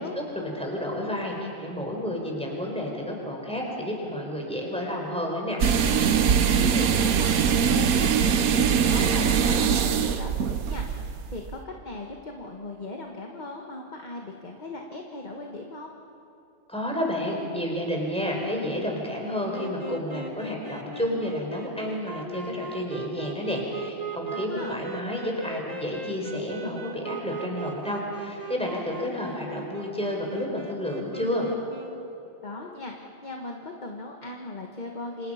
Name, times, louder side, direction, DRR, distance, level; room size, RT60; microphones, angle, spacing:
voice 1, 0.0-5.6 16.7-31.5, left 1 dB, 5° left, -1 dB, 4.9 m, -30 dB
sound 1, 5.6-11.6, right 7 dB, 90° right, 1.4 m, -22 dB
voice 2, 6.6-15.9 24.3-24.7 32.4-32.9 33.2-35.3, left 2 dB, 35° left, 1 dB, 1.7 m, -38 dB
sound 2, 19.5-32.1, right 3 dB, 30° right, 1.6 m, -39 dB
29.5 x 26.0 x 5.9 m, 2.7 s
omnidirectional pair, 1.4 m